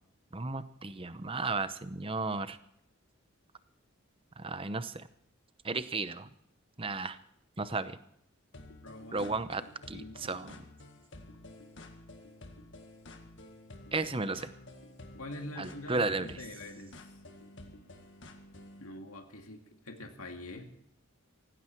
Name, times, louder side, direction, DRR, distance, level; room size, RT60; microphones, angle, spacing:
voice 1, 0.3-2.6 4.4-5.1 5.6-6.3 6.8-7.2 7.6-8.0 9.1-9.6 9.9-10.6 13.9-14.5 15.6-16.4, right 3 dB, 25° right, 13 dB, 0.8 m, -34 dB
sound 1, 8.5-18.9, left 2 dB, 55° left, 1.8 m, -51 dB
voice 2, 8.8-9.3 9.6-9.7 9.9-10.5 15.2-17.0 18.8-20.7, left 1 dB, 85° left, 4 dB, 2.2 m, -45 dB
17.5 x 16.5 x 4.6 m, 0.72 s
head